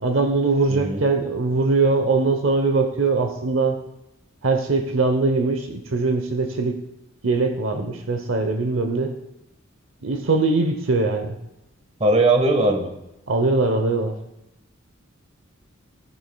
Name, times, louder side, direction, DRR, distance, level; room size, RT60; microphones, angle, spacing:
voice 1, 0.0-3.8 4.4-6.8 7.2-9.1 10.0-11.4 13.3-14.2, right 3 dB, 70° right, 6 dB, 0.9 m, -21 dB
voice 2, 0.7-1.1 12.0-12.9, right 2 dB, 30° right, 5 dB, 1.4 m, -19 dB
17.5 x 10.5 x 2.3 m, 0.90 s
head